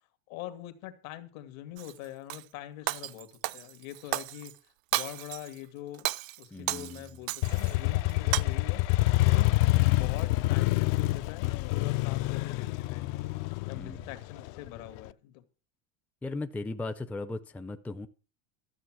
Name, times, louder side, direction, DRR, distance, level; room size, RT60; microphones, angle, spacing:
voice 1, 0.3-4.5 4.9-6.1 6.4-8.8 9.3-9.6 9.9-13.4 13.7-15.4, left 13 dB, 75° left, 2.1 m, -43 dB
Shatter, 1.8-2.4 2.9-4.5 4.9-5.6 5.9-7.7 8.1-8.4, right 20 dB, 75° right, 0.7 m, -33 dB
voice 2, 6.5-7.0 13.7-14.1 16.2-18.1, left 2 dB, 5° left, 0.5 m, -37 dB
Motorcycle, 7.4-15.1, left 19 dB, 50° left, 0.6 m, -27 dB
13.0 x 7.4 x 6.1 m
supercardioid pair, 140°, 41 cm